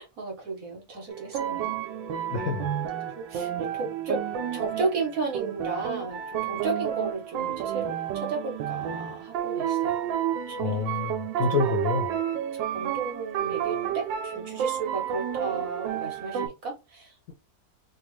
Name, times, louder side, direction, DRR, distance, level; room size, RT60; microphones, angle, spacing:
voice 1, 0.0-1.8 3.1-4.2 4.5-10.0 10.5-10.8 11.6-11.8 12.5-17.1, right 4 dB, 55° right, 1.2 m, -34 dB
sound 1, 1.1-16.5, right 10 dB, 85° right, 1.3 m, -30 dB
voice 2, 2.3-2.7 10.6-12.2, left 5 dB, 65° left, 0.8 m, -28 dB
3.3 x 2.3 x 3.0 m
omnidirectional pair, 2.0 m